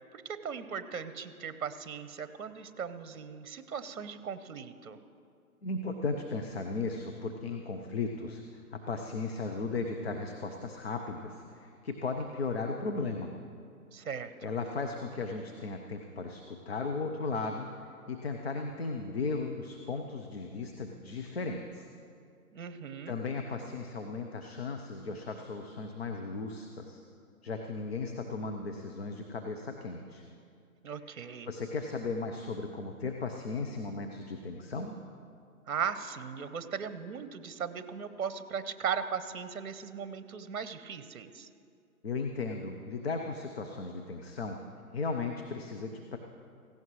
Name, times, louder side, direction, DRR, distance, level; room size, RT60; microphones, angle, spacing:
voice 1, 0.1-5.0 13.9-14.3 22.5-23.2 30.8-31.5 35.7-41.5, right 7 dB, 65° right, 12 dB, 0.9 m, -38 dB
voice 2, 5.6-13.3 14.0-14.1 14.4-21.9 23.1-27.0 27.4-30.2 31.1-35.0 42.0-44.6 44.9-46.2, left 3 dB, 40° left, 4 dB, 0.8 m, -36 dB
17.5 x 16.0 x 3.1 m, 2.4 s
hypercardioid pair, 160°, 46 cm